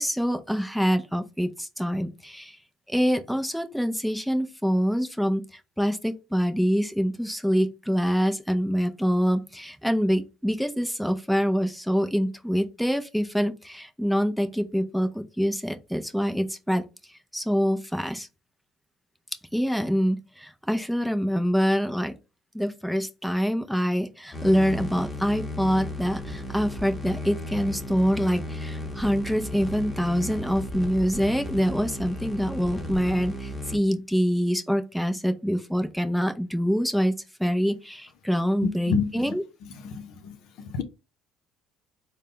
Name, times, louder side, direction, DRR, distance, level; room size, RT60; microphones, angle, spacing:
voice 1, 0.0-2.6 2.9-16.8 17.3-18.3 19.5-22.1 22.5-39.4, equal, ahead, 0.5 m, -25 dB
sound 1, 24.3-33.8, left 1 dB, 15° left, 0.9 m, -35 dB
voice 2, 38.9-39.3 39.8-40.4 40.6-40.8, left 5 dB, 70° left, 0.7 m, -28 dB
3.8 x 2.2 x 3.6 m
cardioid pair, 110°, 0 cm